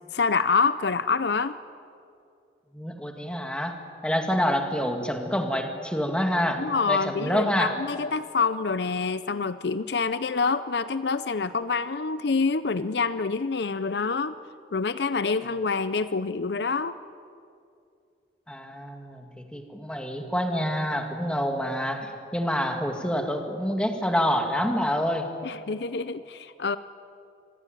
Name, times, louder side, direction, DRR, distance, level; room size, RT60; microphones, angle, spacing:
voice 1, 0.1-1.6 6.6-14.4 14.7-17.0 25.4-26.8, left 4 dB, 65° left, 14 dB, 0.6 m, -26 dB
voice 2, 2.7-3.8 4.0-7.7 18.5-25.3, equal, 5° left, 4 dB, 2.2 m, -27 dB
26.0 x 21.0 x 9.1 m, 2.5 s
head